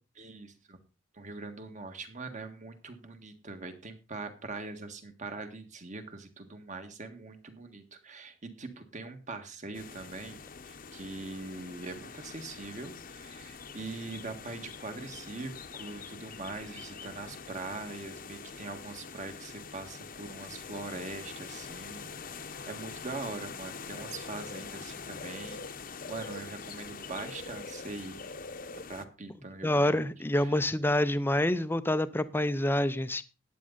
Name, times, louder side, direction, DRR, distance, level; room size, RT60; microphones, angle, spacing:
voice 1, 0.2-0.8 1.1-22.1 22.7-25.6 26.1-28.2 28.9-30.1 30.4-30.6, right 3 dB, 40° right, 1.7 m, -42 dB
sound 1, 9.7-29.0, left 5 dB, 45° left, 0.9 m, -44 dB
voice 2, 29.6-33.2, left 1 dB, 10° left, 0.6 m, -27 dB
14.0 x 9.4 x 4.0 m
head